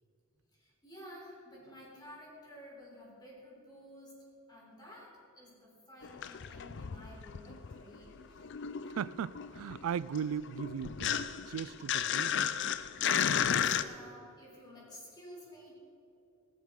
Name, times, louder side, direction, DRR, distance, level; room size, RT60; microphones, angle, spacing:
voice 1, 0.5-8.2 12.9-15.7, equal, 20° left, -4 dB, 3.9 m, -52 dB
sound 1, 6.0-8.0 8.2-13.8, left 8 dB, 55° left, 0.5 m, -33 dB
voice 2, 8.9-12.5, right 7 dB, 80° right, 20 dB, 0.3 m, -38 dB
16.0 x 13.5 x 3.8 m, 2.6 s
head